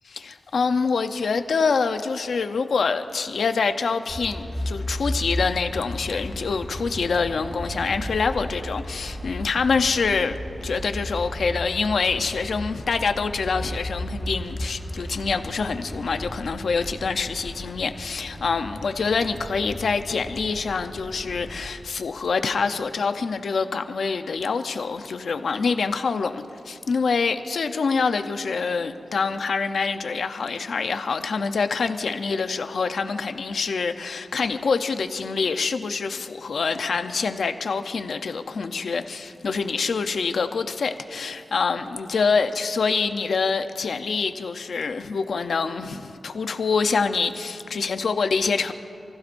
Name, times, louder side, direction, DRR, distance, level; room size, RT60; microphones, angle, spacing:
voice 1, 0.1-10.4 10.6-48.7, left 5 dB, 80° left, 0.7 m, -25 dB
sound 1, 4.1-21.7, equal, 15° right, 1.6 m, -34 dB
28.5 x 15.5 x 2.7 m
wide cardioid pair, 95°, 0 cm